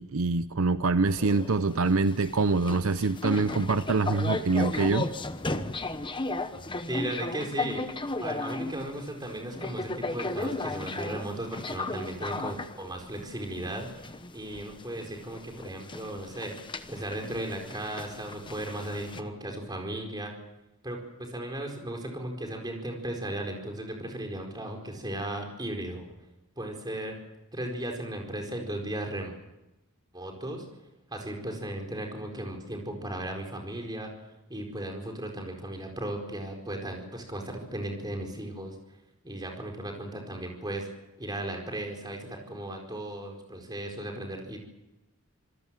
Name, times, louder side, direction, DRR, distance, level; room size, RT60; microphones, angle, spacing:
voice 1, 0.0-5.1, right 3 dB, 70° right, 13 dB, 0.7 m, -25 dB
sound 1, 1.1-19.2, left 2 dB, 20° left, 1.1 m, -36 dB
voice 2, 6.9-7.8 8.2-16.6 16.9-20.3 20.8-26.1 26.6-27.1 27.5-29.3 30.1-30.6 31.1-34.1 34.5-38.8 39.2-40.9 41.2-44.6, right 1 dB, 20° right, 2 dB, 4.5 m, -36 dB
27.0 x 18.0 x 7.7 m, 0.99 s
head